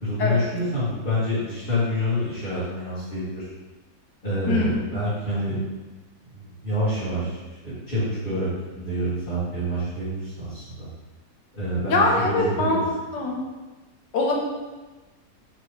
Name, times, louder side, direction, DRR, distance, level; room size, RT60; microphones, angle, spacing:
voice 1, 0.0-3.5 4.2-5.6 6.3-7.4 7.6-8.5 8.7-10.9 11.5-12.0 12.2-12.7, equal, 30° left, -13 dB, 2.4 m, -27 dB
voice 2, 4.5-4.9 11.9-12.8 13.1-13.4 14.1-14.3, left 2 dB, 80° left, -1 dB, 1.8 m, -22 dB
6.1 x 5.8 x 3.3 m, 1.2 s
omnidirectional pair, 1.8 m